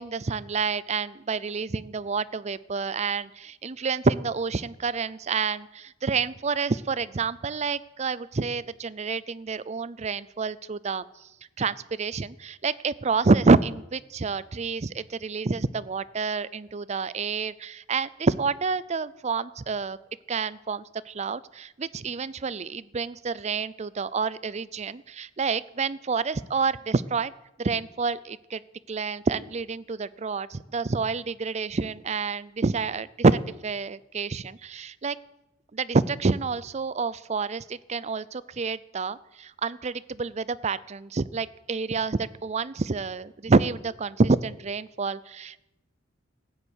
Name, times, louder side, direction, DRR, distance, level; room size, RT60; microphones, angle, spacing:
voice 1, 0.0-11.0 11.6-20.0 20.3-27.3 27.6-28.6 28.9-35.2 35.7-45.6, right 4 dB, 35° right, 18 dB, 0.5 m, -28 dB
15.0 x 9.8 x 8.1 m, 0.92 s
head